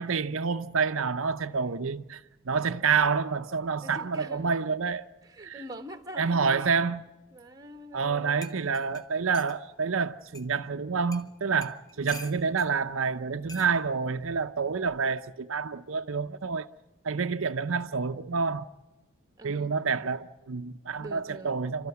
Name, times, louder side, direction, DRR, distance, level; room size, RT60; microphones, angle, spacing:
voice 1, 0.0-5.1 5.4-5.6 6.2-7.0 7.9-16.7 17.0-18.7 19.4-21.9, right 5 dB, 65° right, 0.7 m, -28 dB
voice 2, 3.8-4.5 5.2-6.9 7.3-8.5 19.4-20.0 20.9-21.5, right 1 dB, 15° right, 1.5 m, -44 dB
sound 1, 8.0-8.1 8.4-9.6 10.3-10.5 11.1-11.3 11.6-12.7 13.5-13.7 14.8-15.1, left 2 dB, 15° left, 1.4 m, -45 dB
29.5 x 13.5 x 9.3 m
head